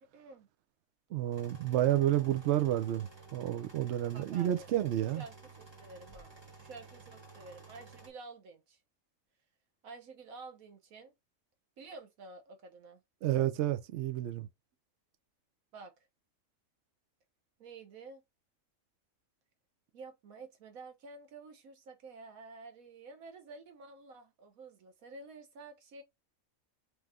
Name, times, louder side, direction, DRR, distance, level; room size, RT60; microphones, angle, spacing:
voice 1, 0.1-0.5 1.8-2.0 4.1-4.7 5.1-8.8 9.8-11.1 11.8-13.0 15.7-15.9 17.6-18.2 19.9-26.0, right 3 dB, 85° right, 1.4 m, -50 dB
voice 2, 1.1-5.2 13.2-14.5, right 13 dB, 65° right, 0.8 m, -30 dB
sound 1, 1.3-8.1, right 3 dB, 20° right, 1.0 m, -53 dB
3.3 x 3.1 x 3.5 m
omnidirectional pair, 1.4 m